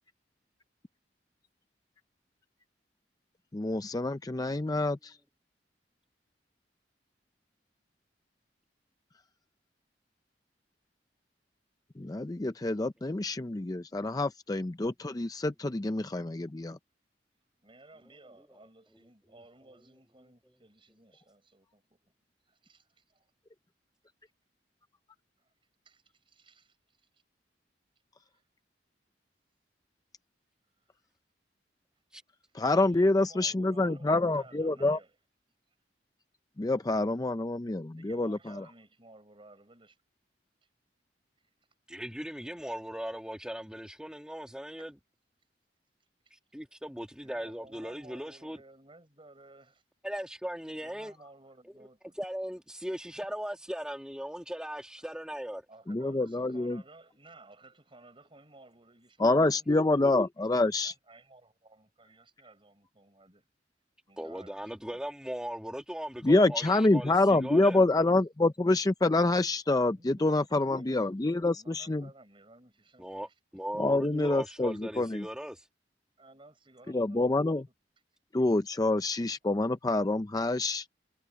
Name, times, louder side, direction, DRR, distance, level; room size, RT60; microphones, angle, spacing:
voice 1, 3.5-5.2 12.0-16.8 32.5-35.0 36.6-38.6 55.9-56.8 59.2-60.9 66.2-72.1 73.8-75.2 76.9-77.7 78.3-80.9, left 2 dB, 20° left, 0.5 m, -27 dB
voice 2, 17.6-22.1 22.5-22.8 25.8-27.1 28.3-28.5 32.8-35.2 37.9-40.0 44.8-44.9 46.2-46.3 47.2-49.8 50.8-52.2 55.0-55.1 55.7-63.5 64.1-65.0 69.9-73.3 74.7-74.8 76.2-77.5, right 2 dB, 30° right, 5.5 m, -57 dB
voice 3, 41.9-44.9 46.3-48.6 50.0-51.1 52.2-55.6 64.2-67.8 73.0-73.3 73.5-75.7, equal, 5° right, 1.8 m, -38 dB
head